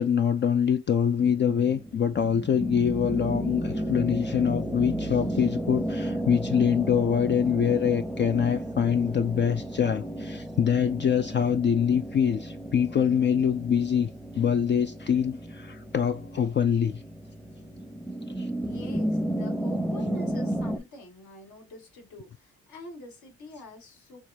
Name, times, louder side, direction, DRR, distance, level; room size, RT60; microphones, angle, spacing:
voice 1, 0.0-14.1 14.4-17.0 18.4-18.5, left 8 dB, 40° left, 0.4 m, -24 dB
sound 1, 1.2-20.8, right 1 dB, 5° left, 0.7 m, -33 dB
voice 2, 18.6-24.2, left 1 dB, 70° left, 2.5 m, -46 dB
6.2 x 2.3 x 2.8 m
cardioid pair, 90°, 30 cm